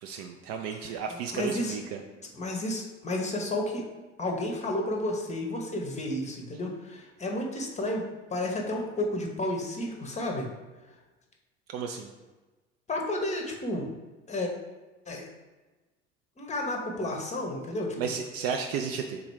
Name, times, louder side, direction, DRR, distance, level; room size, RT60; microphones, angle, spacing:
voice 1, 0.0-2.0 11.7-12.1 18.0-19.2, right 6 dB, 40° right, 4 dB, 0.4 m, -33 dB
voice 2, 1.3-1.8 2.3-3.9 4.2-8.0 8.3-10.5 12.9-13.9 14.3-14.5 15.1-15.3 16.4-18.0, left 1 dB, 20° left, 1 dB, 0.8 m, -31 dB
3.7 x 2.9 x 4.6 m, 1.2 s
figure-of-eight pair, 60°, 36 cm